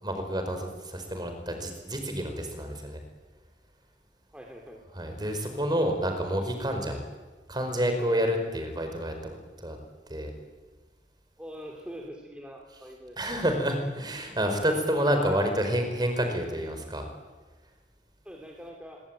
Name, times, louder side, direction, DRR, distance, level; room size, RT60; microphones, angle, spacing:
voice 1, 0.0-3.0 4.9-7.0 7.5-9.8 10.1-10.3 13.2-17.0, equal, 25° right, 6 dB, 5.0 m, -29 dB
voice 2, 4.3-4.8 11.4-13.2 14.7-14.9 18.2-19.0, equal, 5° right, 0 dB, 3.2 m, -43 dB
26.5 x 23.0 x 9.0 m, 1.3 s
head